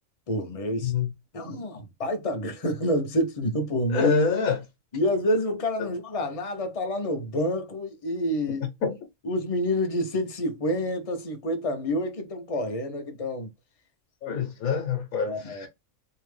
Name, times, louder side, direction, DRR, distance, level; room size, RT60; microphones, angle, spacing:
voice 1, 0.3-0.9 1.3-4.1 4.9-8.7 9.2-13.5 15.2-15.7, left 1 dB, 35° left, 0.7 m, -28 dB
voice 2, 0.8-1.1 3.9-4.6 5.8-5.9 8.8-9.0 14.2-15.7, left 5 dB, 80° left, 1.3 m, -26 dB
3.2 x 2.8 x 3.1 m
omnidirectional pair, 1.4 m